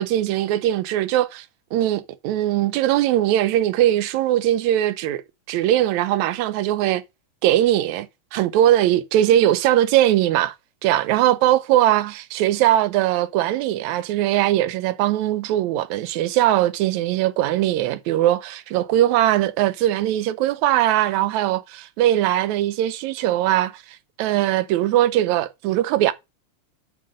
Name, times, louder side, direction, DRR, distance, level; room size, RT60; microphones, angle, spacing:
voice 1, 0.0-1.4 1.7-5.2 5.5-7.0 7.4-8.1 8.3-10.5 10.8-23.8 24.2-26.1, right 13 dB, 80° right, 1.6 m, -20 dB
7.7 x 5.5 x 6.3 m
omnidirectional pair, 3.9 m